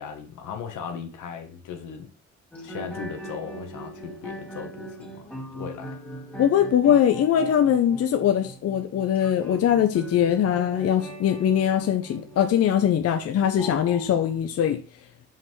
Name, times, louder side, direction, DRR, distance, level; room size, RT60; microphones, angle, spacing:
voice 1, 0.0-2.1 2.6-5.3 5.5-6.0, left 7 dB, 80° left, 1.3 m, -37 dB
sound 1, 2.5-14.4, equal, 5° left, 1.7 m, -40 dB
voice 2, 6.4-14.8, left 9 dB, 55° left, 0.6 m, -22 dB
5.5 x 5.5 x 3.2 m
cardioid pair, 90°, 30 cm